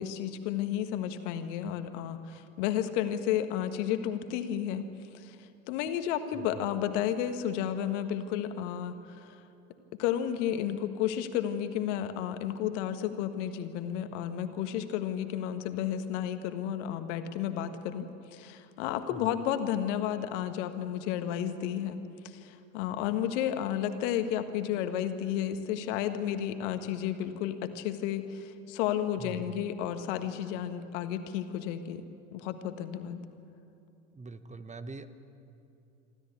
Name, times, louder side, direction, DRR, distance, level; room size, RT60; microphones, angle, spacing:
voice 1, 0.0-4.9 5.1-9.3 9.9-32.0 32.3-33.2, left 10 dB, 65° left, 9 dB, 1.6 m, -32 dB
voice 2, 6.3-6.6 19.1-19.2 29.2-29.5 34.1-35.1, right 3 dB, 20° right, 11 dB, 1.1 m, -43 dB
26.0 x 13.5 x 9.6 m, 2.7 s
hypercardioid pair, 70°, 39 cm